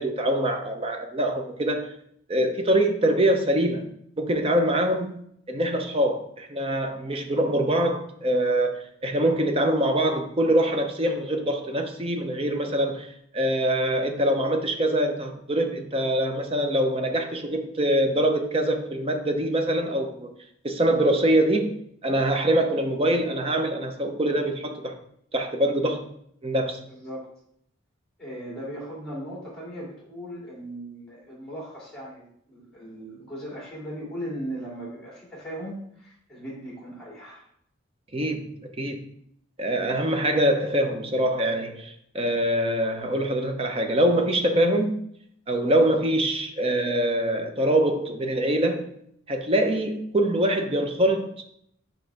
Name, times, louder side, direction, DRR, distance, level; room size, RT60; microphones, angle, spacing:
voice 1, 0.0-1.9 2.3-3.9 4.2-5.2 5.5-13.1 13.3-20.3 20.6-25.0 25.3-26.0 26.4-26.8 38.1-38.5 38.8-39.1 39.6-45.0 45.5-48.9 49.3-51.3, right 1 dB, 30° right, 5 dB, 0.6 m, -24 dB
voice 2, 26.9-27.3 28.2-37.4, equal, 5° left, -5 dB, 2.5 m, -38 dB
6.2 x 4.9 x 3.4 m, 0.70 s
head